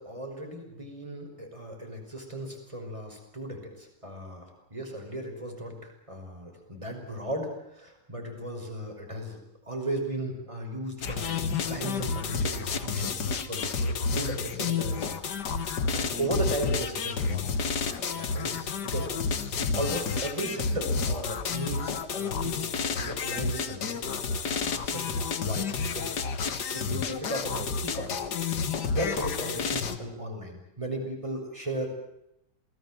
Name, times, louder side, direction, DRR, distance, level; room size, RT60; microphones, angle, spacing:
voice 1, 0.0-17.5 17.8-19.4 19.7-26.1 26.7-28.3 28.9-31.9, right 1 dB, 15° right, 2 dB, 5.6 m, -36 dB
sound 1, 11.0-30.0, left 5 dB, 65° left, 2.0 m, -30 dB
27.5 x 19.5 x 7.6 m, 0.82 s
omnidirectional pair, 1.9 m